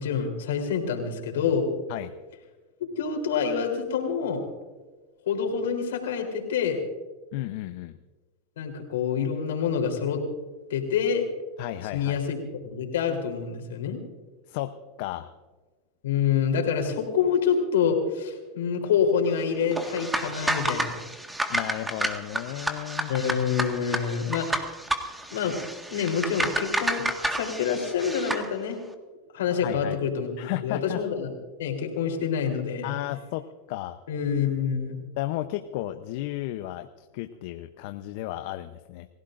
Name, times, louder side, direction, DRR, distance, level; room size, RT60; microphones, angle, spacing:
voice 1, 0.0-1.8 3.0-4.4 5.3-6.8 8.6-10.2 10.7-11.2 11.9-12.4 12.7-14.0 16.0-20.9 23.1-24.6 25.3-25.6 25.9-27.0 27.3-28.8 29.3-31.3 31.6-33.0 34.1-35.0, left 7 dB, 80° left, 3 dB, 3.6 m, -27 dB
voice 2, 7.3-7.9 11.6-12.2 14.5-14.7 15.0-15.3 21.5-23.1 29.6-30.0 30.4-31.0 32.8-34.0 35.2-39.1, left 15 dB, 65° left, 8 dB, 0.8 m, -33 dB
sound 1, 19.7-28.5, right 1 dB, 10° right, 1.7 m, -30 dB
29.5 x 16.0 x 2.6 m, 1.3 s
hypercardioid pair, 100°, 0 cm